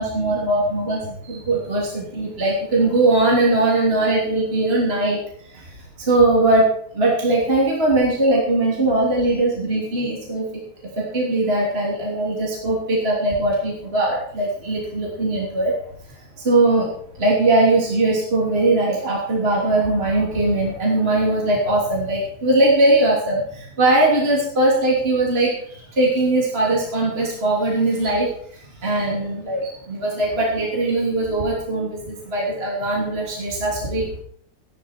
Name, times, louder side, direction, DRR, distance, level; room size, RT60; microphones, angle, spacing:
voice 1, 0.0-5.2 5.5-6.7 6.9-10.5 11.0-15.7 16.4-16.9 17.1-34.2, right 2 dB, 30° right, -3 dB, 3.3 m, -20 dB
15.0 x 11.5 x 4.5 m, 0.62 s
omnidirectional pair, 2.3 m